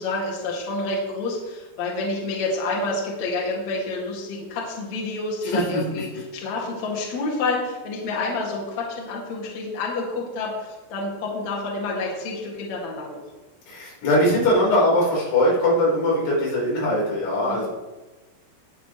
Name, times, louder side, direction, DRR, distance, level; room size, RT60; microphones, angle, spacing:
voice 1, 0.0-13.2 17.4-17.7, left 3 dB, 45° left, -4 dB, 2.9 m, -28 dB
voice 2, 5.4-5.8 13.7-17.7, left 1 dB, 90° left, -6 dB, 6.7 m, -21 dB
20.5 x 7.2 x 3.2 m, 1.1 s
omnidirectional pair, 5.3 m